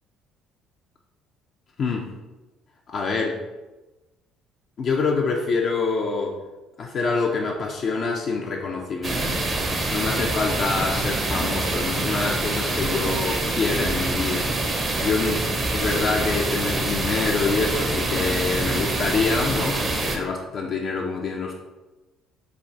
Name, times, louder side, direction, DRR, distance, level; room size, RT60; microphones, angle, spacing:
voice 1, 1.8-2.1 2.9-3.4 4.8-6.4 6.8-9.5 9.9-14.5 15.0-21.5, left 4 dB, 55° left, 0 dB, 0.3 m, -26 dB
sound 1, 9.0-20.2, right 2 dB, 40° right, 0.5 m, -25 dB
3.2 x 2.3 x 2.7 m, 1.1 s
hypercardioid pair, 65°, 0 cm